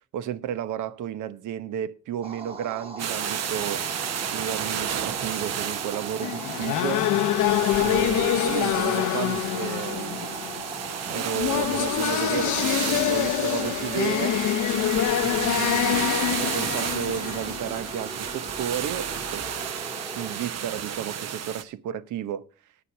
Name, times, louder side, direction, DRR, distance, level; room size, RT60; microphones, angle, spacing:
voice 1, 0.1-3.9 4.3-7.1 7.8-10.4 11.1-14.4 15.2-19.5 20.2-22.4, right 10 dB, 80° right, 0.9 m, -33 dB
sound 1, 2.2-20.4, right 3 dB, 20° right, 1.5 m, -40 dB
sound 2, 3.0-21.6, right 8 dB, 60° right, 1.1 m, -32 dB
sound 3, 6.2-18.1, left 12 dB, 80° left, 0.7 m, -26 dB
10.5 x 8.3 x 5.6 m
cardioid pair, 90°, 30 cm